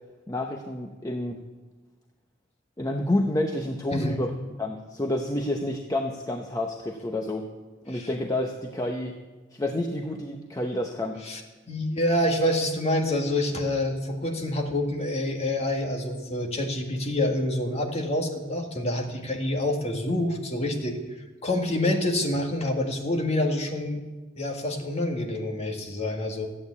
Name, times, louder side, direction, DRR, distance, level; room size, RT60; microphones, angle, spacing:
voice 1, 0.3-1.4 2.8-4.3 4.6-7.5 7.9-9.1 9.5-11.2, left 1 dB, 20° left, 3 dB, 0.8 m, -29 dB
voice 2, 11.7-21.0 21.4-24.0 24.4-26.5, left 1 dB, 35° left, 2 dB, 1.9 m, -27 dB
14.5 x 8.8 x 8.4 m, 1.2 s
head